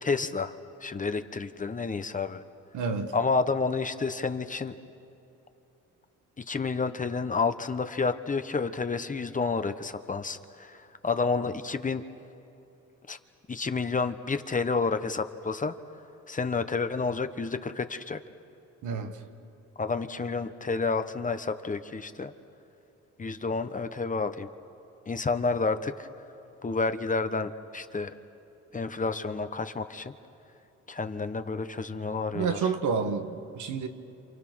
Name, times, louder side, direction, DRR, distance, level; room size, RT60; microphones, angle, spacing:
voice 1, 0.0-2.4 3.1-4.7 6.4-12.0 13.1-13.2 13.5-15.7 16.3-18.2 19.8-22.3 23.2-24.5 25.1-26.1 26.6-28.2 28.7-30.1 30.9-32.6, left 4 dB, 25° left, 1.1 m, -30 dB
voice 2, 2.7-3.2 18.8-19.3 32.3-33.9, right 5 dB, 80° right, 1.7 m, -29 dB
28.0 x 28.0 x 6.3 m
cardioid pair, 90°, 30 cm